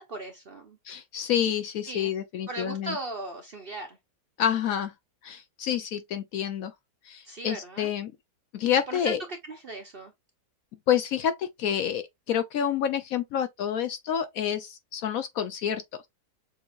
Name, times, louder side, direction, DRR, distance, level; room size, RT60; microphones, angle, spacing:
voice 1, 0.0-0.8 1.9-2.1 2.5-4.0 7.3-7.9 8.9-9.1 9.6-10.1, right 2 dB, 45° right, 0.8 m, -37 dB
voice 2, 0.9-3.0 4.4-4.9 5.2-6.7 7.0-8.1 8.5-9.2 10.9-16.1, left 9 dB, 65° left, 1.0 m, -28 dB
6.9 x 2.8 x 2.4 m
omnidirectional pair, 1.8 m